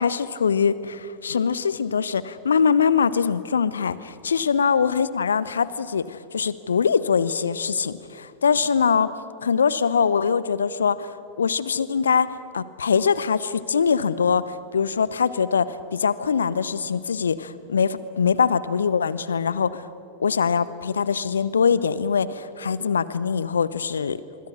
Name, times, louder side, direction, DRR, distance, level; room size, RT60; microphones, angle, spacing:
voice 1, 0.0-9.1 9.4-12.3 12.5-19.9 20.2-24.2, left 6 dB, 70° left, 17 dB, 0.8 m, -23 dB
25.0 x 24.5 x 6.5 m, 2.4 s
figure-of-eight pair, 90°, 0 cm